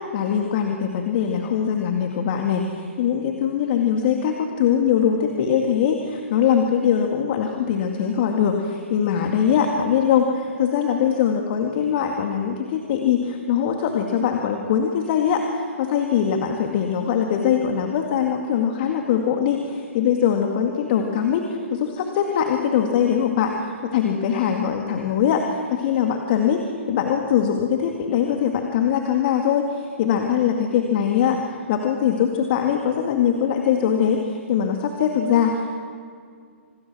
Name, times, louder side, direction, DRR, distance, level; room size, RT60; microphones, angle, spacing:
voice 1, 0.1-26.6 26.9-35.8, left 8 dB, 45° left, 3 dB, 2.1 m, -22 dB
27.0 x 20.0 x 6.2 m, 2.1 s
figure-of-eight pair, 120°, 7 cm